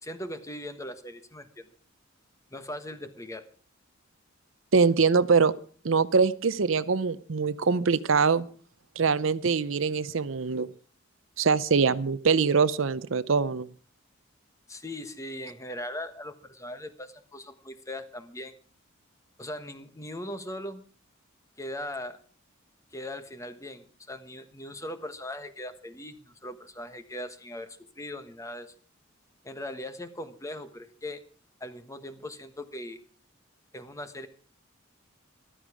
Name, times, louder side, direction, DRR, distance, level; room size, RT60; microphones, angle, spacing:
voice 1, 0.0-1.6 2.5-3.4 14.7-18.5 19.4-20.8 21.6-22.2 22.9-28.7 29.4-31.2 31.6-33.0 33.7-34.3, left 1 dB, 15° left, 10 dB, 1.3 m, -39 dB
voice 2, 4.7-5.5 5.8-8.5 9.0-10.7 11.4-13.7, right 5 dB, 70° right, 16 dB, 0.6 m, -23 dB
14.0 x 12.5 x 4.9 m, 0.42 s
head